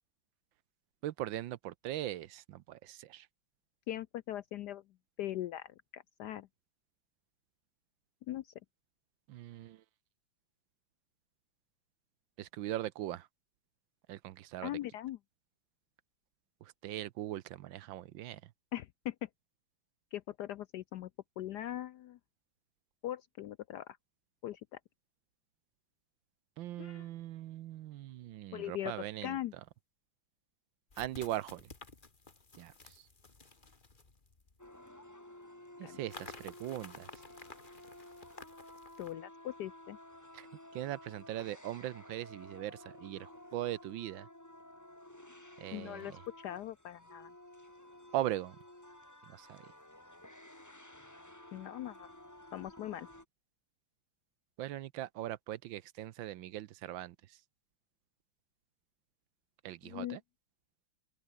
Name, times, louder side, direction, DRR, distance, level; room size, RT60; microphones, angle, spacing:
voice 1, 1.0-3.3 9.3-9.8 12.4-13.3 14.1-14.7 16.6-18.5 26.6-29.4 31.0-31.7 32.6-33.0 35.8-37.1 40.3-40.5 40.7-44.3 45.6-46.2 48.1-48.6 49.3-49.6 54.6-57.4 59.6-60.2, right 13 dB, 70° right, 1.4 m, -40 dB
voice 2, 3.9-4.8 5.2-6.5 8.3-8.5 14.6-15.2 18.7-19.3 20.1-21.1 21.4-22.2 23.0-24.0 24.4-24.8 26.8-27.1 28.5-28.9 29.2-29.5 35.8-36.0 39.0-40.0 45.7-47.3 51.5-52.1 52.5-53.1 59.8-60.2, left 13 dB, 75° left, 1.0 m, -40 dB
sound 1, 29.5-29.6 30.9-34.8 36.1-39.1, left 3 dB, 25° left, 2.0 m, -53 dB
sound 2, 34.6-53.3, left 1 dB, 10° left, 2.3 m, -54 dB
open air
omnidirectional pair, 2.3 m